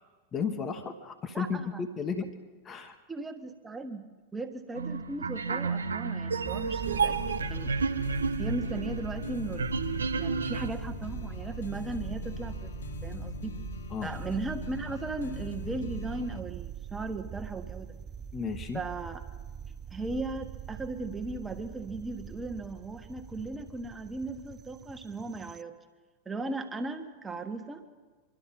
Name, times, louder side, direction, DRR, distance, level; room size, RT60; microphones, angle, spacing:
voice 1, 0.3-2.3 2.6-3.0 13.9-14.1 18.3-18.8, left 5 dB, 25° left, 7 dB, 1.3 m, -33 dB
voice 2, 1.3-1.8 3.1-7.7 8.4-9.7 10.2-12.7 13.0-13.6 14.0-17.9 18.7-19.2 19.9-25.7 26.2-27.8, right 2 dB, 10° right, 6 dB, 1.5 m, -37 dB
sound 1, 4.7-10.7, right 5 dB, 70° right, 0.8 m, -31 dB
sound 2, 6.4-25.6, right 9 dB, 30° right, 0.5 m, -42 dB
sound 3, 6.8-16.4, left 7 dB, 65° left, 0.8 m, -42 dB
26.0 x 12.5 x 4.2 m, 1.4 s
figure-of-eight pair, 90°, 0 cm